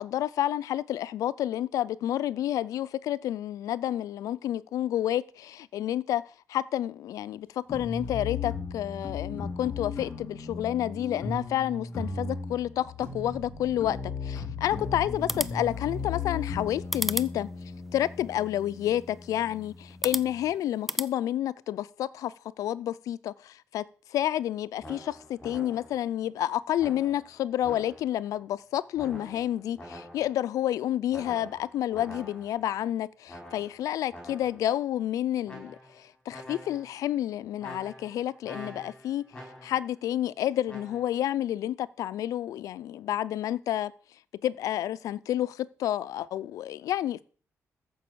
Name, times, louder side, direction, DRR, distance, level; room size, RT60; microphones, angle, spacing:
voice 1, 0.0-6.2 6.5-17.5 17.9-23.8 24.1-39.2 39.6-43.9 44.4-47.2, left 12 dB, 80° left, 0.5 m, -30 dB
sound 1, 7.7-20.5, left 4 dB, 30° left, 2.3 m, -37 dB
sound 2, 15.1-21.1, equal, ahead, 0.4 m, -37 dB
sound 3, 24.8-26.1 26.8-28.3 29.0-30.5 31.1-32.7 33.3-34.7 35.4-36.0 36.3-37.0 37.6-39.9 40.7-41.0, equal, 15° left, 5.2 m, -46 dB
14.0 x 5.5 x 6.8 m
cardioid pair, 170°, 6 cm